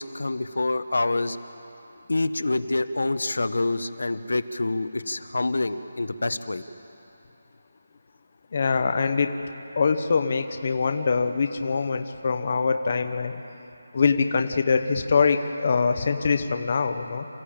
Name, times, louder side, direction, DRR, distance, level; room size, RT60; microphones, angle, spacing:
voice 1, 0.0-1.4 2.1-6.6, left 2 dB, 75° left, 12 dB, 1.1 m, -26 dB
voice 2, 8.5-9.3 9.8-13.4 13.9-17.2, left 5 dB, 30° left, 6 dB, 0.7 m, -23 dB
28.0 x 15.0 x 8.8 m, 2.9 s
figure-of-eight pair, 180°, 0 cm